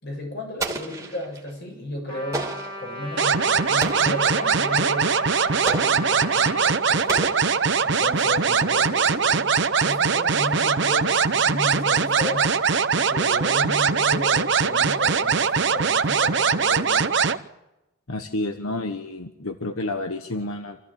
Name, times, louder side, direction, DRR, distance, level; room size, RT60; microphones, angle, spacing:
voice 1, 0.0-2.5 2.8-5.1 5.4-7.2 7.8-9.5 9.8-12.5 12.9-17.0, left 1 dB, 50° left, 1 dB, 7.7 m, -34 dB
Explosion, 0.6-1.5 2.3-2.9 3.8-4.3 5.7-6.2 7.1-8.0, right 2 dB, 15° right, 2.6 m, -32 dB
Trumpet, 2.1-6.8, left 1 dB, 25° left, 4.6 m, -36 dB
sound 1, 3.2-17.4, right 5 dB, 55° right, 0.8 m, -21 dB
voice 2, 18.1-20.8, left 2 dB, 85° left, 7 dB, 1.3 m, -30 dB
27.0 x 14.5 x 8.8 m, 0.97 s
head